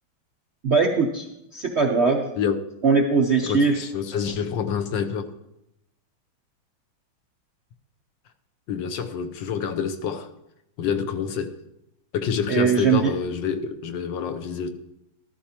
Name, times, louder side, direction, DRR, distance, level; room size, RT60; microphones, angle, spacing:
voice 1, 0.6-1.3 1.5-2.3 2.8-3.8 12.5-13.1, right 5 dB, 60° right, 0.7 m, -20 dB
voice 2, 3.4-5.2 8.7-10.3 10.8-11.6 12.1-14.7, left 7 dB, 70° left, 1.4 m, -27 dB
13.0 x 13.0 x 2.9 m
omnidirectional pair, 2.2 m